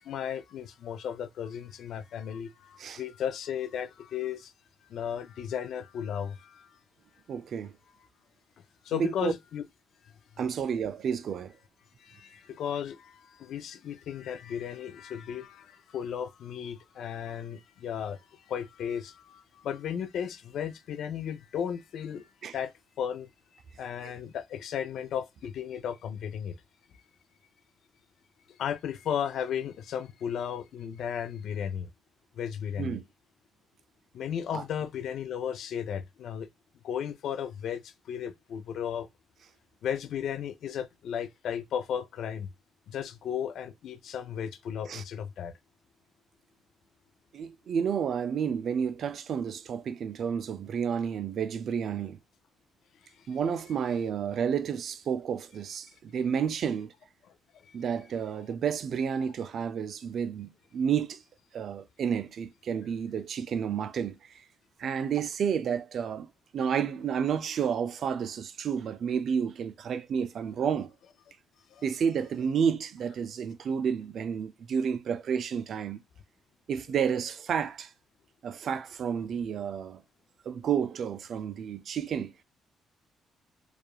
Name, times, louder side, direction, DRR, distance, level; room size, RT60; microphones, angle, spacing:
voice 1, 0.1-4.5 4.9-6.8 8.8-9.6 12.0-22.7 23.0-23.3 23.8-26.6 28.6-31.9 32.4-33.0 34.1-36.5 36.8-39.1 39.8-42.5 42.9-45.5 53.2-53.3 71.7-71.8, left 8 dB, 70° left, 0.4 m, -35 dB
voice 2, 7.3-7.7 8.9-9.3 10.4-11.5 22.4-22.6 24.0-24.1 32.8-33.0 34.5-34.6 44.9-45.0 47.3-52.2 53.3-56.9 57.7-61.2 61.5-64.1 64.8-66.3 66.5-70.9 71.8-76.0 76.7-77.9 78.4-80.0 80.5-82.3, right 7 dB, 60° right, 0.3 m, -30 dB
2.9 x 2.3 x 2.3 m
cardioid pair, 90°, 0 cm